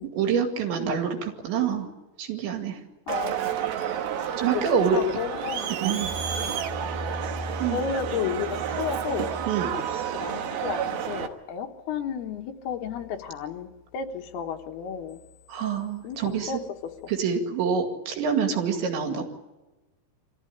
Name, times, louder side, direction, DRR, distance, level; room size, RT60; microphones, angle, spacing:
voice 1, 0.1-1.9 2.2-2.8 4.4-5.0 5.8-6.1 7.6-7.8 9.5-9.7 15.5-16.5 17.1-19.3, right 6 dB, 85° right, 4 dB, 4.5 m, -26 dB
voice 2, 3.1-3.7 4.9-5.7 6.4-6.6 7.7-9.3 10.2-15.2 16.0-16.6, left 7 dB, 70° left, 4 dB, 3.0 m, -33 dB
Crowd, 3.1-11.3, right 7 dB, 70° right, 2.9 m, -30 dB
25.0 x 15.0 x 9.9 m, 1.1 s
omnidirectional pair, 5.0 m